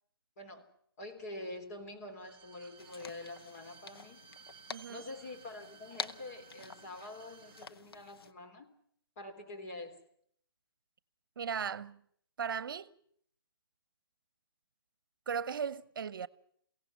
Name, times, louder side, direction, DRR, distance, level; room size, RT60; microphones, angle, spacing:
voice 1, 0.4-0.7 1.0-4.3 4.9-8.7 9.2-10.0, left 2 dB, 40° left, 3.5 m, -46 dB
Bowed string instrument, 2.1-7.7 8.0-8.1, right 7 dB, 20° right, 1.5 m, -58 dB
sound 1, 2.8-8.3, left 5 dB, 75° left, 1.2 m, -47 dB
voice 2, 4.7-5.0 11.4-12.0 12.4-12.9 15.3-16.3, right 7 dB, 60° right, 0.9 m, -37 dB
23.5 x 16.5 x 9.6 m
hypercardioid pair, 165°, 13 cm